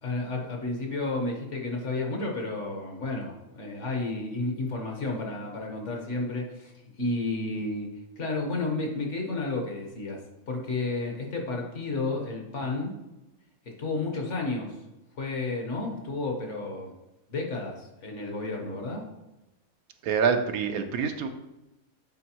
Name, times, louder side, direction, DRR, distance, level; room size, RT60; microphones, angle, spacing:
voice 1, 0.0-12.9 13.6-14.7 15.1-16.9 17.3-19.1, left 2 dB, 55° left, 1 dB, 1.4 m, -32 dB
voice 2, 20.0-21.3, right 6 dB, 80° right, 6 dB, 1.1 m, -26 dB
8.2 x 4.4 x 2.9 m, 0.96 s
omnidirectional pair, 1.5 m